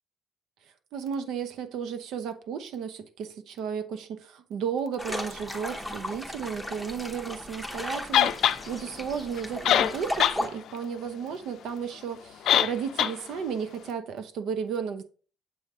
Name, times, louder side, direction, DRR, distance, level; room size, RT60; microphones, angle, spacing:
voice 1, 0.9-15.0, right 7 dB, 75° right, 0.9 m, -34 dB
sound 1, 5.0-10.5, left 1 dB, 5° right, 0.9 m, -36 dB
sound 2, 8.1-8.6 9.4-9.5 9.6-10.4 10.7-10.8 12.5-12.7 13.0-13.1, left 10 dB, 65° left, 0.4 m, -21 dB
7.1 x 3.2 x 5.3 m
cardioid pair, 170°, 0 cm